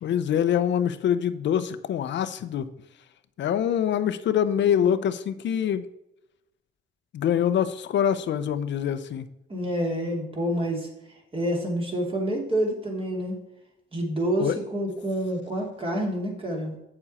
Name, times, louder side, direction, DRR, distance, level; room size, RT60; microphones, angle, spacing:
voice 1, 0.0-2.7 3.4-5.8 7.1-9.3 14.4-14.6, left 9 dB, 65° left, 13 dB, 0.7 m, -25 dB
voice 2, 9.5-10.9 11.3-13.4 13.9-16.7, equal, 30° right, -1 dB, 2.8 m, -28 dB
8.5 x 6.9 x 4.2 m, 0.87 s
cardioid pair, 90°, 20 cm